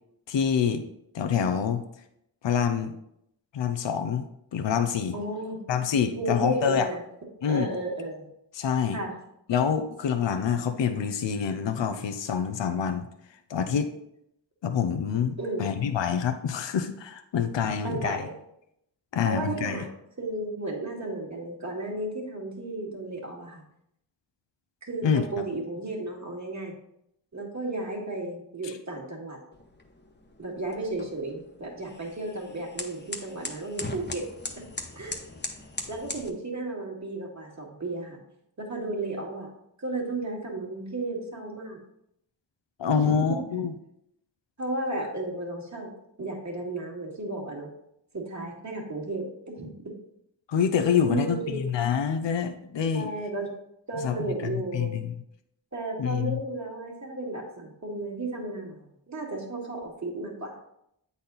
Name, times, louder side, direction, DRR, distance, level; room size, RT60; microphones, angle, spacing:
voice 1, 0.3-0.8 1.1-1.8 2.4-2.9 3.5-4.2 4.5-5.1 5.7-6.9 7.4-7.7 8.5-9.0 9.5-13.1 13.5-13.9 14.6-18.2 19.1-19.8 25.0-25.2 28.6-28.7 42.8-43.7 50.5-53.1 54.0-54.1 54.4-55.1 56.0-56.4, left 7 dB, 75° left, 8 dB, 0.7 m, -26 dB
voice 2, 5.1-5.6 6.2-7.0 7.4-8.2 8.9-9.1 15.4-15.7 17.6-18.3 19.2-19.9 20.2-23.6 24.8-26.7 27.3-29.4 30.4-34.2 35.0-35.2 35.9-38.2 38.6-39.5 39.8-41.8 42.9-43.4 44.6-45.9 46.2-47.7 48.1-49.9 51.1-51.6 52.9-53.5 53.9-55.0 55.7-60.5, right 2 dB, 40° right, -1 dB, 2.1 m, -33 dB
sound 1, 29.5-36.3, left 2 dB, 25° left, 0.9 m, -40 dB
8.4 x 4.2 x 4.0 m, 0.77 s
wide cardioid pair, 75°, 44 cm